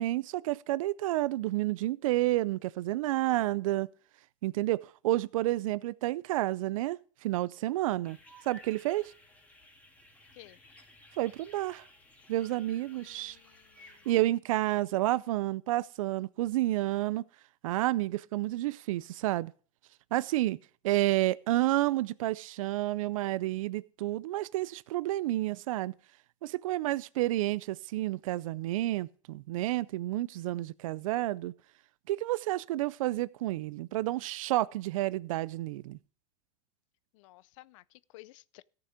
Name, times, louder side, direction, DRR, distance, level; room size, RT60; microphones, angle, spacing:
voice 1, 0.0-3.9 4.4-8.2 8.4-9.1 11.2-11.8 12.3-13.4 14.1-17.2 17.6-19.5 20.1-20.6 20.8-25.9 26.4-31.5 32.1-36.0, right 16 dB, 85° right, 0.4 m, -30 dB
sound 1, 8.0-14.2, left 1 dB, 10° left, 1.9 m, -57 dB
voice 2, 12.9-14.1 37.1-38.6, left 19 dB, 70° left, 0.5 m, -55 dB
14.5 x 6.9 x 5.0 m
supercardioid pair, 125°, 17 cm